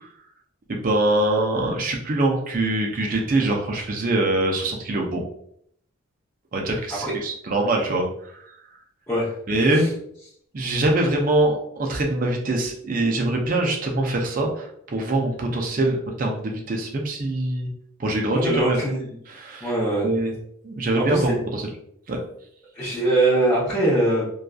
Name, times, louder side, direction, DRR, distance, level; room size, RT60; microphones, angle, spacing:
voice 1, 0.7-5.2 6.5-8.4 9.5-9.8 10.5-17.7 18.0-18.8 19.3-19.7 20.0-20.3 20.6-21.6 22.1-22.2, right 2 dB, 40° right, 1 dB, 0.4 m, -23 dB
voice 2, 18.3-19.1 19.6-20.1 21.0-21.3 22.7-24.3, right 1 dB, 15° left, -9 dB, 0.6 m, -22 dB
2.6 x 2.3 x 2.3 m, 0.69 s
head